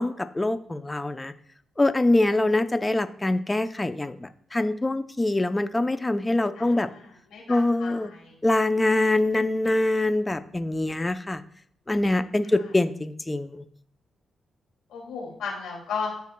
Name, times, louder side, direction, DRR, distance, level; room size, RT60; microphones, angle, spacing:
voice 1, 0.0-1.3 1.8-6.9 7.5-8.1 8.4-11.4 11.9-13.6, left 2 dB, 20° left, 10 dB, 0.6 m, -24 dB
voice 2, 6.6-8.3 12.5-12.6 14.9-16.1, left 5 dB, 85° left, -1 dB, 2.5 m, -35 dB
12.5 x 4.1 x 2.3 m, 0.64 s
cardioid pair, 65°, 0 cm